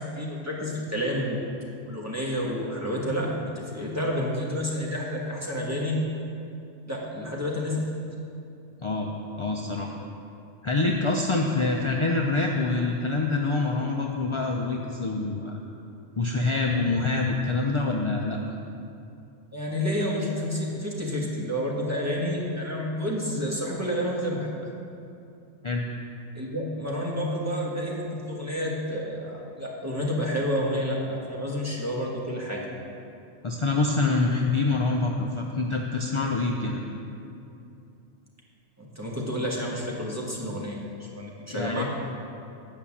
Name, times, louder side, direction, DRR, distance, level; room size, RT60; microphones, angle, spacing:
voice 1, 0.0-1.4 1.8-6.0 6.9-7.8 19.5-24.7 26.3-32.6 38.8-41.8, equal, 15° right, -4 dB, 1.3 m, -29 dB
voice 2, 8.8-9.1 9.4-10.0 10.6-15.6 16.2-18.4 25.6-25.8 33.4-36.8 41.5-41.8, left 3 dB, 45° left, 0 dB, 0.4 m, -26 dB
8.8 x 5.5 x 7.2 m, 2.6 s
omnidirectional pair, 1.3 m